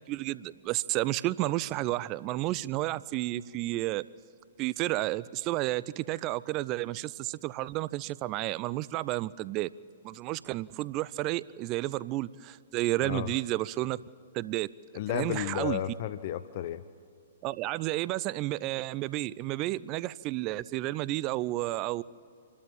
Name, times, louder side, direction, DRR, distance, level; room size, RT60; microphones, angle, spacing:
voice 1, 0.1-4.1 4.6-9.7 10.0-14.0 14.3-14.7 15.1-15.8 17.4-22.0, right 17 dB, 35° right, 19 dB, 0.4 m, -31 dB
voice 2, 14.9-16.8, left 11 dB, 45° left, 13 dB, 0.7 m, -33 dB
27.5 x 13.0 x 9.0 m, 2.4 s
figure-of-eight pair, 115°, 0 cm